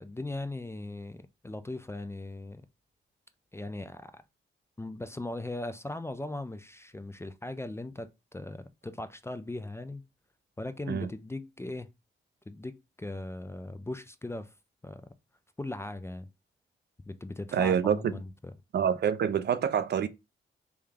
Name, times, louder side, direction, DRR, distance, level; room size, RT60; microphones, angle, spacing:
voice 1, 0.0-2.7 3.5-4.2 4.8-10.0 10.6-11.9 12.5-14.5 14.8-15.1 15.6-16.3 17.1-18.3, left 2 dB, 10° left, 0.4 m, -39 dB
voice 2, 17.5-18.1 18.7-20.1, right 8 dB, 55° right, 0.4 m, -26 dB
3.4 x 2.2 x 3.4 m
cardioid pair, 55°, 21 cm